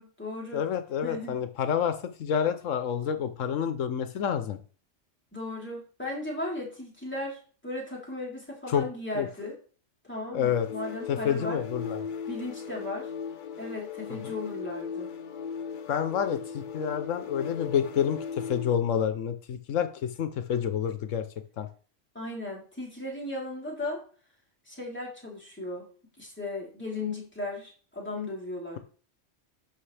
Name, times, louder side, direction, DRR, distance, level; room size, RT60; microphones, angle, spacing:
voice 1, 0.0-0.7 1.0-1.3 5.3-9.6 10.1-11.6 12.3-13.1 13.6-15.1 22.2-24.0 24.7-25.9 26.2-28.8, left 2 dB, 10° left, -4 dB, 3.6 m, -36 dB
voice 2, 0.5-4.6 8.7-8.8 9.1-9.3 10.3-10.7 11.1-12.0 14.2-14.3 15.9-21.2 21.6-21.7, left 8 dB, 85° left, 9 dB, 1.2 m, -28 dB
sound 1, 10.5-18.9, left 6 dB, 55° left, 0.6 m, -38 dB
11.5 x 6.1 x 3.4 m, 0.40 s
omnidirectional pair, 1.3 m